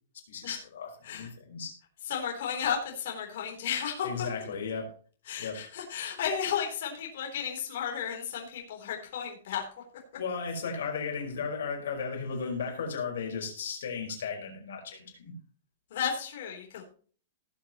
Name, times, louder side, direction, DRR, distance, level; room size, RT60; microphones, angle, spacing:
voice 1, 0.3-1.7 4.0-4.9 5.4-5.6 10.2-15.3, left 5 dB, 75° left, 2 dB, 5.1 m, -35 dB
voice 2, 2.0-4.3 5.3-9.8 15.9-16.8, left 8 dB, 55° left, 0 dB, 3.8 m, -33 dB
18.5 x 8.1 x 3.1 m, 0.43 s
hypercardioid pair, 170°, 0 cm